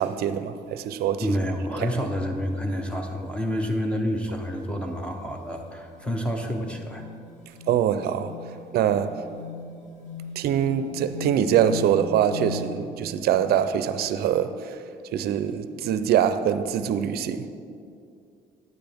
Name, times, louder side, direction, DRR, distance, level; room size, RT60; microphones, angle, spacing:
voice 1, 0.0-1.4 1.8-1.9 7.7-8.3 8.7-9.2 10.4-14.8 15.1-17.5, right 9 dB, 65° right, 0.5 m, -24 dB
sound 1, 0.5-0.8 1.2-1.5 2.0-2.1 2.4-2.5 2.9-12.7, left 4 dB, 45° left, 1.3 m, -41 dB
voice 2, 1.2-7.0, equal, 5° left, 0.8 m, -28 dB
9.9 x 9.5 x 3.5 m
cardioid pair, 110°, 17 cm